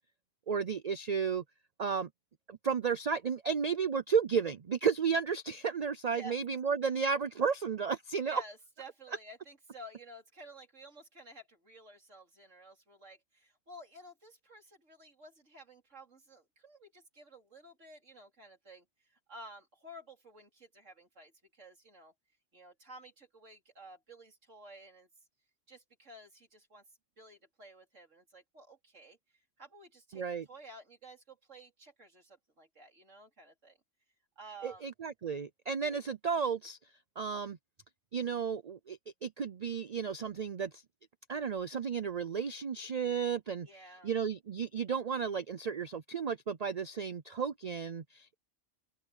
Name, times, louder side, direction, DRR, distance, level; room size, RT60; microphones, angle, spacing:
voice 1, 0.5-1.4 1.8-2.1 2.5-8.4 30.1-30.5 34.6-36.8 37.2-37.6 38.1-40.8 41.3-43.7 44.0-48.4, right 6 dB, 45° right, 0.5 m, -33 dB
voice 2, 8.2-22.1 22.5-25.1 25.7-26.8 27.2-30.2 30.5-33.8 34.4-34.9 35.9-36.0 43.6-44.1, right 1 dB, 80° right, 4.4 m, -53 dB
open air
omnidirectional pair, 1.3 m